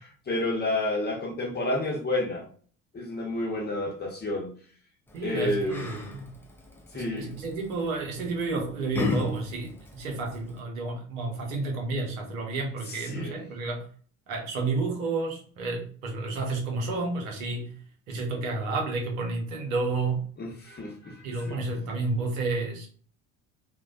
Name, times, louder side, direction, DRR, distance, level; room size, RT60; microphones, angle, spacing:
voice 1, 0.0-2.4 2.9-4.5 5.2-5.9 6.9-7.3 12.9-13.3 20.4-21.6, left 2 dB, 25° left, 0.8 m, -30 dB
Yell, 5.1-10.6, left 3 dB, 5° left, 0.4 m, -36 dB
voice 2, 5.1-6.4 6.9-13.9 14.3-17.8 18.1-20.3 21.2-22.9, right 3 dB, 75° right, 0.9 m, -31 dB
2.5 x 2.1 x 2.4 m
hypercardioid pair, 65°, 41 cm